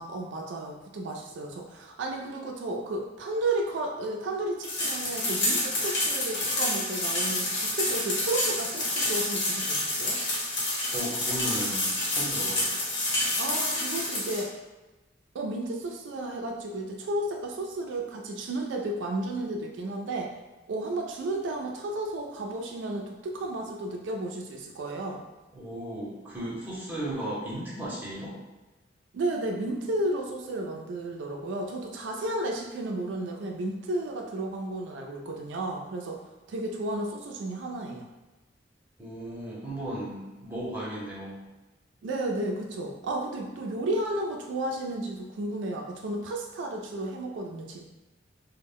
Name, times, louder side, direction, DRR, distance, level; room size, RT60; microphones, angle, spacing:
voice 1, 0.0-10.2 13.4-14.5 15.3-20.3 20.7-25.2 29.1-36.2 36.5-38.1 42.0-47.8, right 2 dB, 80° right, 1 dB, 0.4 m, -33 dB
sound 1, 4.6-14.4, left 1 dB, 85° left, 1.0 m, -28 dB
voice 2, 10.9-12.7 25.5-28.4 39.0-41.4, right 1 dB, 10° right, -7 dB, 0.7 m, -35 dB
2.1 x 2.0 x 3.5 m, 1.1 s
head